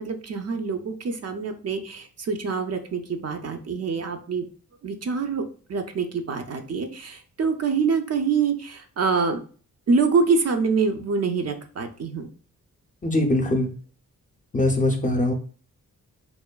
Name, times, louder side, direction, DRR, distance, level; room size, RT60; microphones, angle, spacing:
voice 1, 0.0-4.4 4.8-5.4 5.7-9.4 9.9-12.3, right 5 dB, 45° right, 6 dB, 0.4 m, -25 dB
voice 2, 13.0-13.7 14.5-15.3, left 1 dB, 25° left, 4 dB, 0.5 m, -22 dB
3.0 x 2.1 x 2.2 m, 0.40 s
cardioid pair, 55°, 35 cm